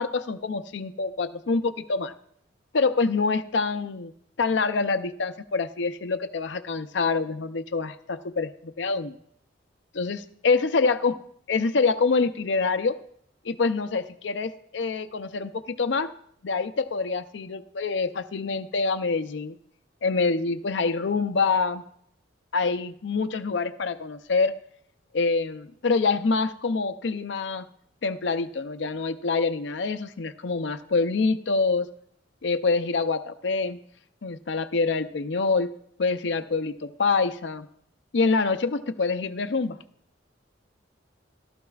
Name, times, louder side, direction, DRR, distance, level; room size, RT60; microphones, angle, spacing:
voice 1, 0.0-2.1 2.7-4.1 4.4-9.2 9.9-11.1 11.5-13.0 13.4-16.1 16.4-19.6 20.0-21.8 22.5-24.5 25.1-27.7 28.0-31.9 32.4-33.8 34.2-35.7 36.0-37.7 38.1-39.8, left 4 dB, 70° left, 9 dB, 0.5 m, -26 dB
15.0 x 13.0 x 2.4 m, 0.68 s
head